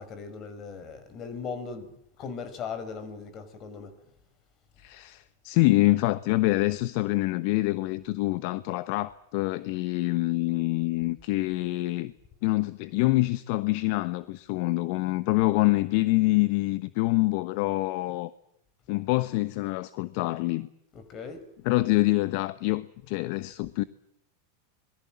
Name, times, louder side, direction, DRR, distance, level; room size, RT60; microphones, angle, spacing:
voice 1, 0.0-1.9 2.2-3.9 20.9-21.4, left 5 dB, 40° left, 5.4 m, -38 dB
voice 2, 4.8-12.1 12.4-18.3 18.9-20.7 21.6-23.8, left 20 dB, 60° left, 1.1 m, -26 dB
26.0 x 22.5 x 7.6 m
hypercardioid pair, 95°, 0 cm